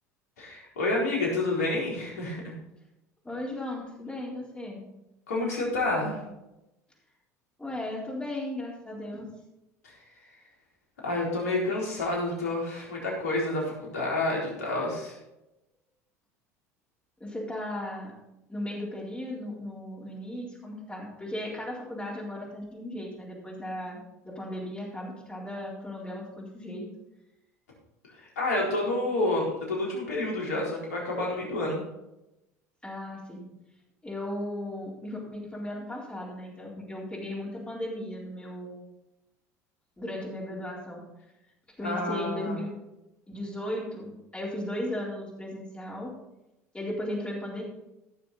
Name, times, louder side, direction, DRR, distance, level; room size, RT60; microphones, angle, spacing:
voice 1, 0.4-2.5 5.3-6.2 11.0-15.1 28.4-31.8 41.8-42.6, left 2 dB, 80° left, -3 dB, 4.1 m, -29 dB
voice 2, 3.2-4.8 7.6-9.3 17.2-18.1 18.5-24.0 24.2-26.9 32.8-33.5 34.0-38.8 40.0-41.0 41.8-42.7 43.3-46.1 46.7-47.6, left 1 dB, 15° left, -5 dB, 4.0 m, -36 dB
15.5 x 6.7 x 4.2 m, 0.92 s
hypercardioid pair, 75°, 9 cm